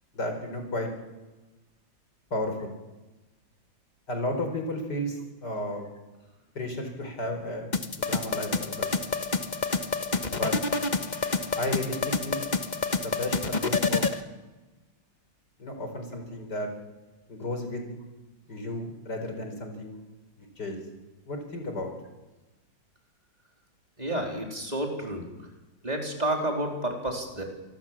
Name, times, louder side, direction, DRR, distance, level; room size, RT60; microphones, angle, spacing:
voice 1, 0.1-0.9 2.3-2.7 4.1-5.9 6.5-7.7 8.1-8.9 10.3-10.5 11.6-12.4 13.0-14.0 15.6-16.7 17.3-17.8 18.5-20.0 20.6-20.8 21.3-21.9, left 1 dB, 60° left, 5 dB, 5.1 m, -33 dB
sound 1, 7.7-14.2, left 4 dB, 25° left, 1.2 m, -28 dB
voice 2, 24.0-25.3 25.8-27.4, right 1 dB, 20° right, 2 dB, 4.1 m, -30 dB
27.5 x 19.5 x 7.5 m, 1.1 s
omnidirectional pair, 2.1 m